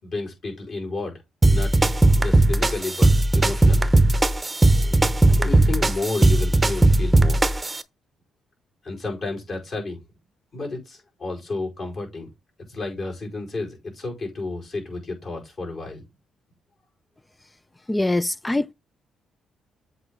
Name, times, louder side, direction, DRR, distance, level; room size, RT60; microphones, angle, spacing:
voice 1, 0.0-1.2 1.5-1.7 2.2-3.9 4.8-7.4 8.8-10.0 10.5-12.3 12.7-16.0, left 3 dB, 50° left, 4.9 m, -31 dB
sound 1, 1.4-7.8, right 2 dB, 15° right, 0.8 m, -18 dB
voice 2, 17.9-18.7, left 2 dB, 15° left, 0.3 m, -23 dB
7.7 x 4.8 x 3.8 m
cardioid pair, 90°, 0 cm